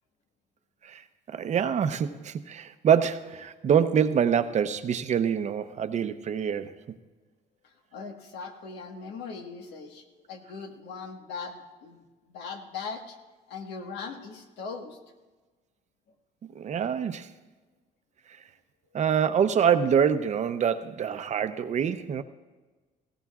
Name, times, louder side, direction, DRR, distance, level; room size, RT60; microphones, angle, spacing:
voice 1, 1.3-6.8 16.5-17.3 18.9-22.2, right 8 dB, 45° right, 10 dB, 0.7 m, -25 dB
voice 2, 7.6-13.2 13.5-15.0, left 5 dB, 90° left, 4 dB, 1.5 m, -40 dB
18.0 x 16.5 x 2.4 m, 1.3 s
cardioid pair, 110°, 17 cm